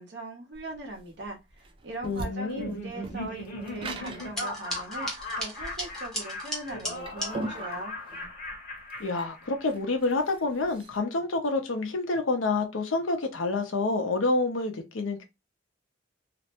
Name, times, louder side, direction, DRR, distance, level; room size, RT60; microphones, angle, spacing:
voice 1, 0.0-5.1 5.3-7.9, right 2 dB, 60° right, 0.8 m, -40 dB
sound 1, 0.5-11.0, right 2 dB, 25° right, 0.3 m, -41 dB
voice 2, 2.0-2.8 9.0-15.2, left 3 dB, 90° left, 0.7 m, -28 dB
Laughter, 2.4-9.9, left 2 dB, 45° left, 0.8 m, -38 dB
sound 2, 4.1-7.3, equal, 5° left, 0.7 m, -36 dB
2.5 x 2.1 x 2.9 m
head